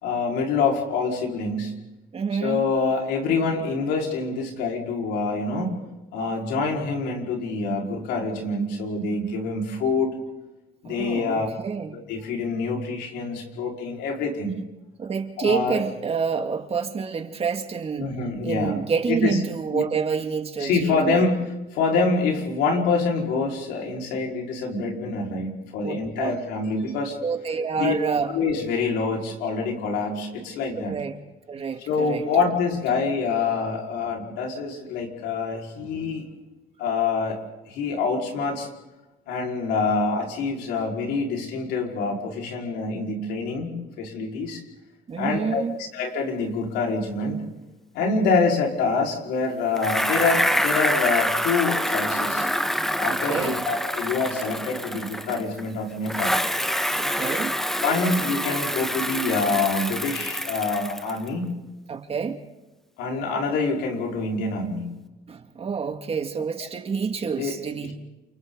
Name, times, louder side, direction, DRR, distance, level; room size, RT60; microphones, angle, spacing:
voice 1, 0.0-1.8 2.3-5.8 6.1-10.1 10.8-11.5 11.9-14.5 15.4-15.8 18.0-18.8 19.1-19.4 19.7-19.8 20.6-27.2 27.7-27.9 28.3-30.9 31.9-36.2 36.8-37.4 37.7-38.7 39.3-44.6 45.2-47.4 47.9-52.5 53.0-56.4 57.8-61.5 63.0-64.9 66.6-66.7 67.3-67.9, left 4 dB, 90° left, 0 dB, 4.9 m, -26 dB
voice 2, 2.1-2.6 10.8-12.0 15.0-18.1 18.4-21.3 25.8-26.3 27.2-28.3 30.8-31.2 31.5-32.3 45.1-45.8 53.1-53.6 57.0-57.6 61.9-62.4 65.3-67.9, right 6 dB, 35° right, 5 dB, 2.1 m, -28 dB
Bicycle, 49.8-55.6 56.1-61.3, equal, ahead, 1.1 m, -26 dB
29.0 x 29.0 x 4.0 m, 1.1 s
cardioid pair, 110°, 17 cm